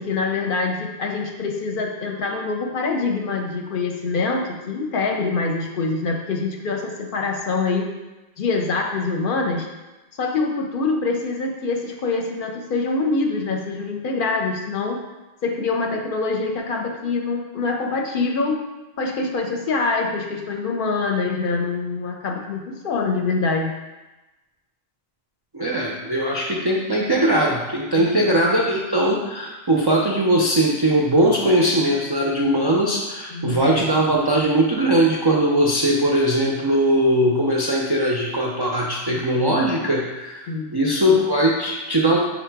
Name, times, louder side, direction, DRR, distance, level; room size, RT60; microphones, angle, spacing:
voice 1, 0.0-7.9 8.4-9.7 10.2-15.0 15.4-18.6 19.0-23.7 26.1-26.2 28.0-28.4 33.3-33.7 39.1-39.2 40.5-40.7, left 3 dB, 65° left, 2 dB, 0.6 m, -25 dB
voice 2, 25.5-40.4 40.7-42.2, right 1 dB, 40° right, -3 dB, 0.3 m, -20 dB
5.6 x 2.1 x 4.4 m, 1.1 s
omnidirectional pair, 1.1 m